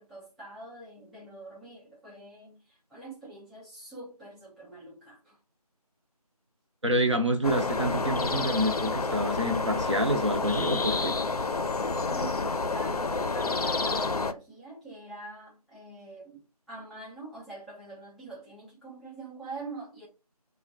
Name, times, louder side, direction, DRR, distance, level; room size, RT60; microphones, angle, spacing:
voice 1, 0.0-5.4 12.1-16.4 16.7-20.1, right 2 dB, ahead, 0.4 m, -44 dB
voice 2, 6.8-11.1, equal, 50° right, 0.7 m, -27 dB
sound 1, 7.4-14.3, left 3 dB, 70° left, 0.5 m, -29 dB
4.6 x 2.1 x 2.5 m
figure-of-eight pair, 170°, 20 cm